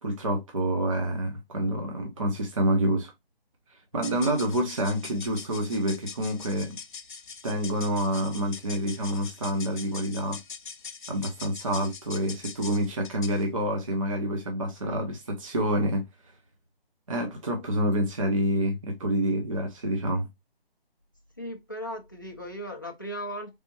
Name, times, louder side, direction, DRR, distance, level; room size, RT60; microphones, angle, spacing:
voice 1, 0.0-3.1 3.7-6.8 7.4-10.4 11.1-16.0 17.1-20.3, equal, 35° right, 0.6 m, -27 dB
sound 1, 3.9-13.5, left 5 dB, 55° left, 0.7 m, -43 dB
voice 2, 21.4-23.6, equal, 20° left, 0.4 m, -37 dB
4.2 x 3.4 x 2.8 m
hypercardioid pair, 165°, 30 cm